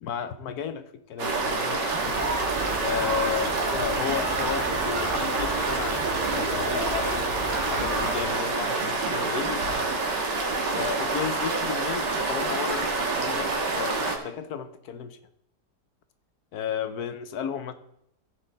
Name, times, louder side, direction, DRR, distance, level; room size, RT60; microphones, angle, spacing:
voice 1, 0.0-2.2 2.8-9.9 10.7-15.2 16.5-17.7, left 8 dB, 70° left, 10 dB, 1.2 m, -33 dB
sound 1, 1.2-14.2, right 3 dB, 85° right, 2.1 m, -27 dB
sound 2, 2.0-8.2, right 1 dB, 50° right, 2.8 m, -34 dB
15.5 x 5.6 x 3.9 m, 0.77 s
omnidirectional pair, 1.8 m